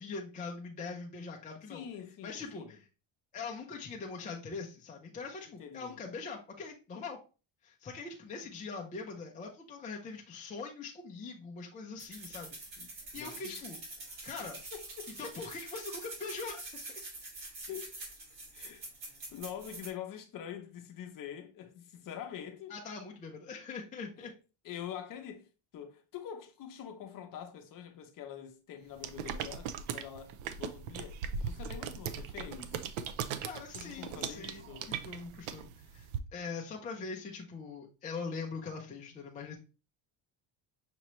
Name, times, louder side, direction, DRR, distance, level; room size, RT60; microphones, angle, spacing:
voice 1, 0.0-1.9 2.2-2.9 3.3-7.2 7.6-12.6 13.1-13.8 14.2-14.6 15.2-16.7 22.7-24.3 33.4-39.6, left 4 dB, 20° left, 0.3 m, -42 dB
voice 2, 1.7-2.8 5.6-6.0 12.8-13.6 14.7-15.1 17.7-18.0 18.5-18.8 19.1-22.8 24.2-24.3 24.6-25.5 25.7-32.8 33.7-34.9, left 9 dB, 40° left, 0.7 m, -45 dB
sound 1, 12.0-19.9, right 2 dB, 65° right, 2.3 m, -46 dB
sound 2, 29.0-36.2, right 7 dB, 85° right, 0.6 m, -39 dB
5.9 x 2.8 x 3.0 m
cardioid pair, 180°, 49 cm